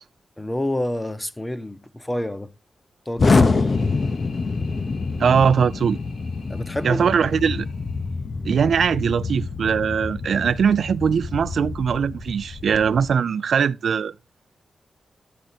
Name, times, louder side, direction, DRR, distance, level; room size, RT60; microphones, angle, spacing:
voice 1, 0.4-2.5 3.1-3.8 6.5-7.0, left 1 dB, 10° left, 0.8 m, -28 dB
Explosion, 3.2-13.1, left 4 dB, 40° left, 0.8 m, -26 dB
sound 1, 3.4-8.5, left 3 dB, 85° left, 5.2 m, -51 dB
voice 2, 5.2-6.0 6.8-7.7 8.4-14.1, right 7 dB, 75° right, 0.4 m, -21 dB
12.0 x 7.6 x 4.1 m
wide cardioid pair, 125°, 0 cm